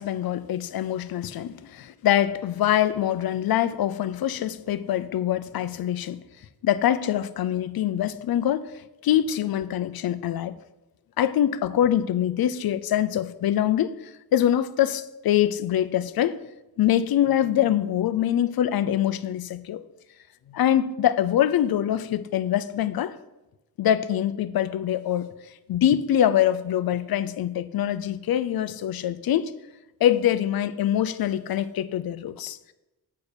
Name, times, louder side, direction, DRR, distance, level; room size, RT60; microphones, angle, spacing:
voice 1, 0.0-6.2 6.6-10.5 11.2-16.4 16.8-19.8 20.5-23.2 23.8-25.3 25.7-29.5 30.0-32.6, left 11 dB, 65° left, 0.5 m, -24 dB
8.3 x 4.4 x 6.7 m
wide cardioid pair, 165°, 39 cm